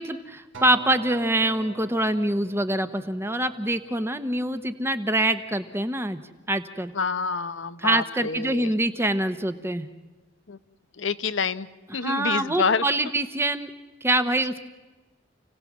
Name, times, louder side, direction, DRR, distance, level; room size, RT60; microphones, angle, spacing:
voice 1, 0.0-6.2 6.5-6.9 7.8-9.9 12.0-13.7 14.0-14.6, right 1 dB, 15° right, 10 dB, 1.1 m, -25 dB
Acoustic guitar, 0.5-5.0 5.6-5.7, right 3 dB, 70° right, 2.4 m, -44 dB
voice 2, 6.9-8.7 10.5-10.6 11.0-11.7 11.9-12.8, left 5 dB, 65° left, 13 dB, 0.9 m, -27 dB
29.5 x 17.5 x 7.4 m, 1.2 s
head